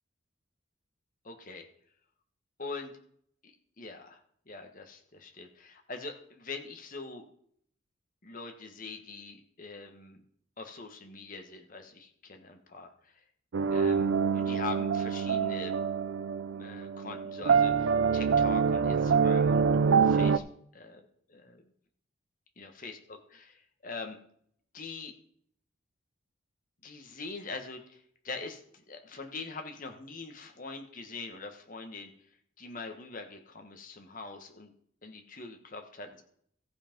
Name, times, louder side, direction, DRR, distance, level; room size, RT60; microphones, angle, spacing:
voice 1, 1.2-1.7 2.6-2.9 3.4-4.2 4.5-7.2 8.2-10.2 10.6-13.2 13.7-14.1 14.3-15.7 16.5-20.4 20.7-21.7 22.6-24.2 24.7-25.1 26.8-32.1 32.6-34.7 35.0-36.2, left 4 dB, 45° left, 5 dB, 1.3 m, -43 dB
sound 1, 13.5-20.4, right 6 dB, 70° right, 0.4 m, -26 dB
14.5 x 5.7 x 5.2 m, 0.66 s
head